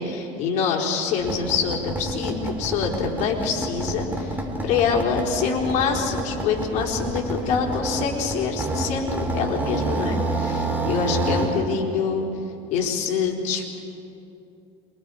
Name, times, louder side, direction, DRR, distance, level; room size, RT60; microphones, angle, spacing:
voice 1, 0.0-12.3 12.7-13.8, left 5 dB, 65° left, -1 dB, 4.1 m, -25 dB
sound 1, 1.2-11.6, right 2 dB, 15° right, 3.1 m, -28 dB
27.0 x 23.0 x 4.9 m, 2.7 s
supercardioid pair, 105°, 13 cm